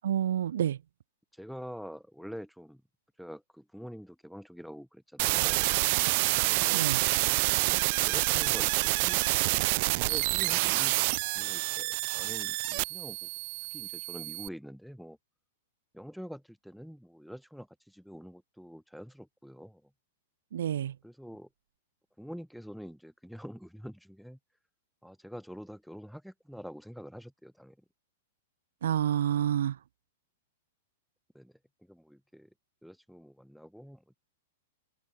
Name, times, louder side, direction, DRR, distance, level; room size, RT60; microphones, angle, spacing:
voice 1, 0.0-0.8 6.7-7.0 20.5-20.9 28.8-29.7, right 10 dB, 70° right, 3.7 m, -28 dB
voice 2, 1.3-2.8 3.2-5.7 6.5-6.9 7.6-9.5 10.0-11.1 11.3-13.3 13.7-15.2 15.9-19.9 21.0-21.5 22.2-24.4 25.0-27.8 31.3-31.5 31.8-32.5 32.8-34.2, equal, ahead, 6.2 m, -46 dB
sound 1, 5.2-14.5, right 26 dB, 35° right, 2.1 m, -28 dB
open air
supercardioid pair, 180°, 0 cm